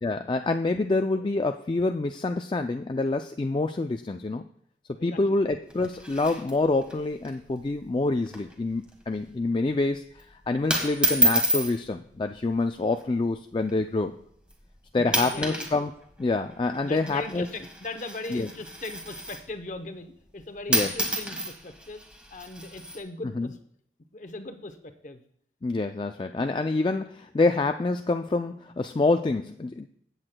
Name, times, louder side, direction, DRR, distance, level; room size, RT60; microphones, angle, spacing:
voice 1, 0.0-4.5 5.0-14.2 14.9-15.9 16.2-17.5 18.3-18.5 20.7-20.9 23.3-23.5 25.6-29.9, left 3 dB, 25° left, 6 dB, 0.3 m, -27 dB
sound 1, 5.7-7.0 7.2-7.3 7.6-7.9 8.3-8.6 8.9-9.2 10.0-10.2 10.7-11.7 12.7-13.0 13.7-13.8 14.5-14.7 15.0-19.5 20.4-20.5 20.7-23.0, right 1 dB, 5° right, 1.4 m, -29 dB
voice 2, 14.9-15.7 16.8-22.0 22.3-23.5 24.1-25.2, left 2 dB, 45° left, 8 dB, 0.8 m, -39 dB
16.5 x 8.0 x 2.2 m, 0.69 s
head